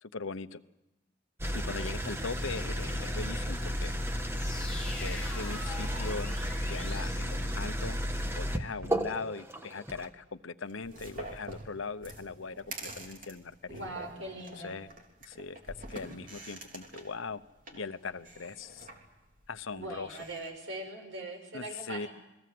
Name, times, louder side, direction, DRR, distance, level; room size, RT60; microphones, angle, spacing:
voice 1, 0.0-0.6 1.5-3.9 5.0-6.3 6.7-8.0 8.4-13.9 14.6-14.9 15.3-15.6 15.9-17.4 17.7-18.9 19.5-20.2 21.5-22.1, left 4 dB, 85° left, 12 dB, 0.9 m, -40 dB
sound 1, 1.4-10.1, equal, 10° right, 1.3 m, -33 dB
sound 2, 4.2-8.0, left 2 dB, 5° left, 6.9 m, -45 dB
sound 3, 10.7-20.5, right 2 dB, 40° right, 3.6 m, -47 dB
voice 2, 13.7-14.7 19.7-22.1, right 2 dB, 85° right, 4 dB, 6.1 m, -41 dB
28.0 x 21.0 x 7.8 m, 0.96 s
head